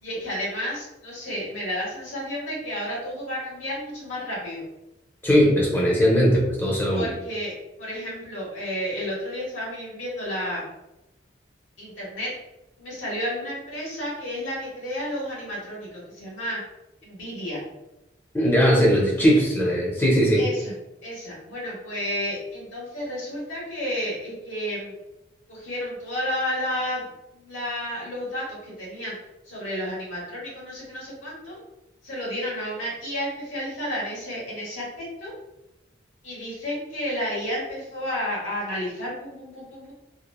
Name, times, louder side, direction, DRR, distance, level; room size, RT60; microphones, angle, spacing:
voice 1, 0.0-4.6 6.9-7.5 7.8-10.6 11.8-12.3 12.8-16.6 17.0-17.6 20.4-20.7 21.0-24.9 25.5-27.1 27.3-29.1 29.5-31.6 32.0-35.3 36.2-39.9, equal, 85° left, -5 dB, 1.1 m, -31 dB
voice 2, 5.2-7.1 18.3-20.4, equal, 10° left, -3 dB, 0.5 m, -19 dB
2.9 x 2.1 x 2.2 m, 0.93 s
head